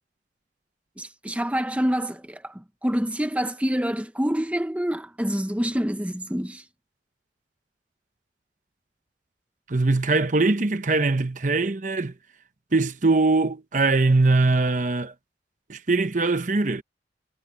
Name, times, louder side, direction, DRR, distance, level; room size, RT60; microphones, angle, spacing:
voice 1, 1.0-6.7, equal, 5° right, 0.8 m, -27 dB
voice 2, 9.7-12.1 12.7-15.1 15.7-16.8, right 3 dB, 45° right, 0.9 m, -22 dB
head